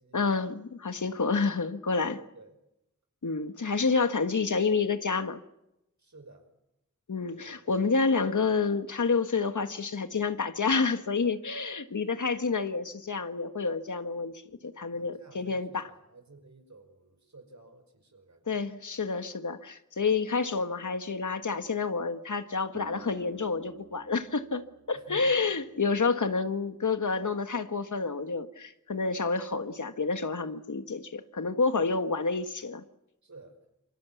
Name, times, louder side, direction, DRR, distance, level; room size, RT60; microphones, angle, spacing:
voice 1, 0.1-2.2 3.2-5.4 7.1-15.9 18.5-32.8, left 4 dB, 75° left, 9 dB, 1.5 m, -29 dB
voice 2, 2.0-2.6 6.0-6.5 7.3-7.8 8.5-8.6 14.9-18.7 20.1-20.2 24.9-25.3 33.2-33.6, right 3 dB, 65° right, 7 dB, 5.4 m, -54 dB
Acoustic guitar, 22.7-27.0 27.9-28.0, right 3 dB, 45° right, 1.8 m, -52 dB
28.0 x 25.0 x 7.2 m, 0.89 s
wide cardioid pair, 50°, 30 cm